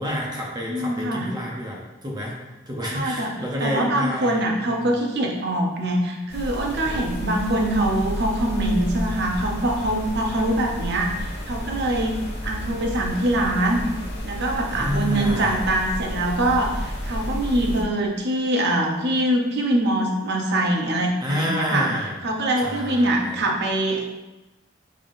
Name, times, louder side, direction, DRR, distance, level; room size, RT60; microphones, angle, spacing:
voice 1, 0.0-2.3 2.7-4.4 4.7-4.9 6.9-7.3 14.7-15.7 21.2-22.3 22.6-23.5, equal, 20° right, -3 dB, 0.7 m, -29 dB
voice 2, 0.7-1.3 2.9-3.3 3.6-12.2 12.4-13.9 14.2-21.9 22.2-24.1, right 1 dB, 60° right, 1 dB, 0.7 m, -23 dB
sound 1, 6.3-17.8, equal, 60° left, 1.4 m, -31 dB
5.3 x 3.5 x 2.6 m, 1.1 s
head